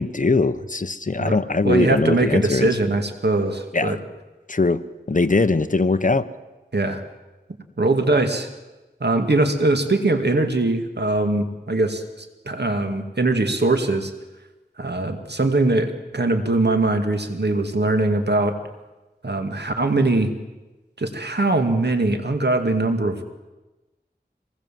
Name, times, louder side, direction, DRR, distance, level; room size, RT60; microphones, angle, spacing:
voice 1, 0.0-2.7 3.7-4.0 4.5-4.8 5.1-6.2, left 3 dB, 45° left, 10 dB, 1.1 m, -21 dB
voice 2, 1.6-4.0 6.7-7.0 7.8-8.5 9.0-14.1 14.8-18.6 19.2-20.3 21.0-23.2, right 2 dB, 75° right, 6 dB, 2.4 m, -21 dB
25.5 x 20.5 x 7.7 m, 1.1 s
wide cardioid pair, 50°, 18 cm